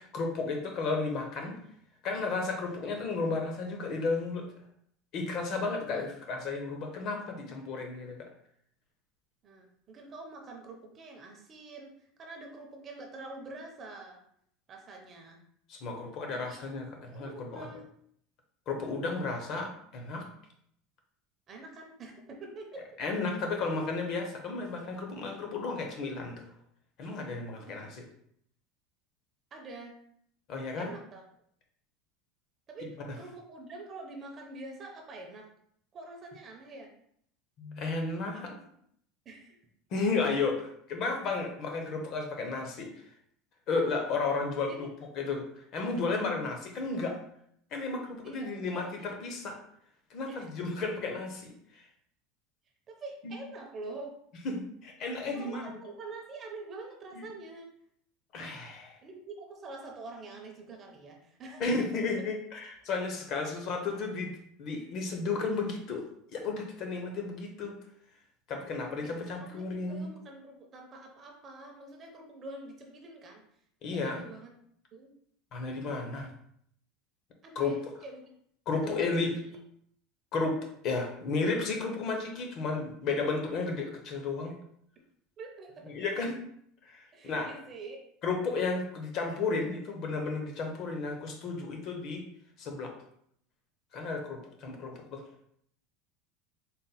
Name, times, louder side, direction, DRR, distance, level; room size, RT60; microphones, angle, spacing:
voice 1, 0.0-1.6 2.0-4.5 5.1-8.2 15.7-17.7 18.7-20.3 23.0-26.4 27.0-28.0 30.5-30.9 37.6-38.5 39.9-40.6 40.9-43.0 43.7-44.9 45.2-47.2 47.7-49.6 50.1-51.9 54.4-55.7 58.3-59.0 61.6-64.3 64.6-66.0 66.3-67.8 68.5-70.1 73.8-74.2 75.5-76.3 77.6-77.8 78.7-79.3 80.3-84.5 85.9-86.4 86.8-87.5 88.2-92.2 92.6-92.9 93.9-95.2, left 3 dB, 40° left, 3 dB, 0.6 m, -33 dB
voice 2, 9.4-14.2 14.7-15.4 16.3-16.6 17.1-17.8 21.5-22.9 27.7-27.8 29.5-30.0 30.8-31.2 32.7-35.5 35.9-36.9 38.3-38.6 39.3-39.6 44.7-44.9 48.2-49.1 50.3-50.5 52.9-54.2 55.3-57.7 59.0-61.9 69.0-73.4 73.9-74.5 74.9-75.1 77.4-78.3 78.8-79.6 85.4-86.0 87.1-88.0, right 2 dB, 25° right, 2 dB, 0.5 m, -46 dB
4.0 x 2.0 x 3.9 m, 0.67 s
cardioid pair, 175°, 0 cm